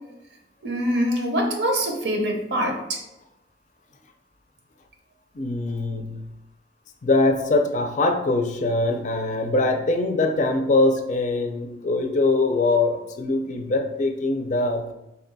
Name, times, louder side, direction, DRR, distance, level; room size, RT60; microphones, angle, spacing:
voice 1, 0.6-3.0, equal, 70° right, 2 dB, 0.7 m, -24 dB
voice 2, 5.3-6.2 7.0-14.9, left 2 dB, 45° left, 5 dB, 0.4 m, -22 dB
3.9 x 2.2 x 3.9 m, 0.91 s
head